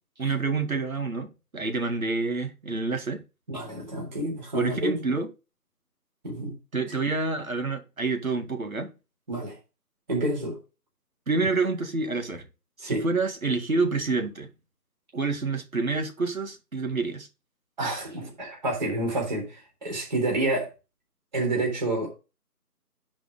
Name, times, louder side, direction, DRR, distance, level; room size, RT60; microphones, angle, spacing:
voice 1, 0.2-3.2 4.5-5.3 6.7-8.9 11.3-12.4 12.8-14.5 15.1-17.3, right 3 dB, 60° right, 2.1 m, -28 dB
voice 2, 3.5-5.0 6.2-6.6 9.3-9.6 10.1-10.6 12.8-13.0 17.8-20.7 21.3-22.1, right 2 dB, 30° right, 3.7 m, -29 dB
10.0 x 5.3 x 3.8 m
figure-of-eight pair, 165°, 48 cm